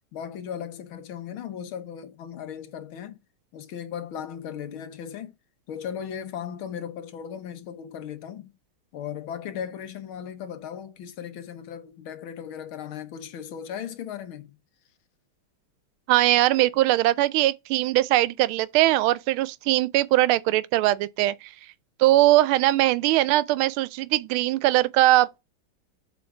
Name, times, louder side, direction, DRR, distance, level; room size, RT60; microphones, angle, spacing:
voice 1, 0.1-3.2 3.5-5.3 5.7-8.5 8.9-14.6, left 8 dB, 75° left, 1.9 m, -37 dB
voice 2, 16.1-21.5 22.0-25.4, right 16 dB, 85° right, 1.4 m, -21 dB
7.8 x 3.4 x 4.8 m
omnidirectional pair, 2.3 m